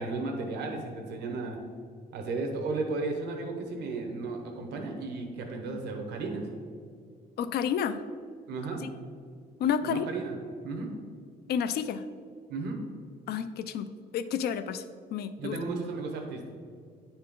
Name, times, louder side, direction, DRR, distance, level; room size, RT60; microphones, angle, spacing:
voice 1, 0.0-1.6 2.1-6.5 8.5-8.8 9.8-10.4 10.6-10.9 12.5-12.8 15.4-16.5, right 3 dB, 90° right, 3 dB, 1.1 m, -34 dB
voice 2, 7.4-8.0 8.8-8.9 9.6-10.0 11.5-12.0 13.3-13.9 14.1-14.8 15.1-15.6, left 8 dB, 70° left, 11 dB, 0.4 m, -30 dB
9.5 x 4.4 x 3.7 m, 2.2 s
cardioid pair, 125°, 17 cm